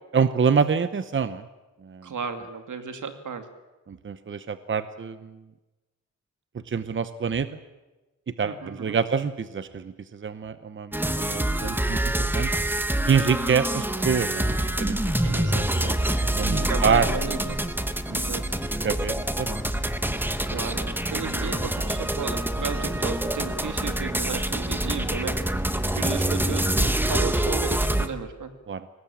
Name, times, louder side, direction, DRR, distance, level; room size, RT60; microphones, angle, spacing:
voice 1, 0.1-1.4 1.8-2.1 3.9-5.3 6.7-7.5 8.4-12.5 13.0-14.4 14.8-15.4 16.4-17.1 18.1-18.2 18.8-19.6 28.7-28.8, right 6 dB, 40° right, 12 dB, 0.8 m, -26 dB
voice 2, 2.0-3.4 8.4-9.0 15.2-16.2 16.7-17.6 18.1-18.4 20.4-25.4 25.9-28.5, right 6 dB, 85° right, 7 dB, 2.5 m, -34 dB
sound 1, 10.9-28.1, right 1 dB, 5° right, 1.1 m, -26 dB
23.0 x 19.0 x 8.8 m, 1.1 s
wide cardioid pair, 170°, 30 cm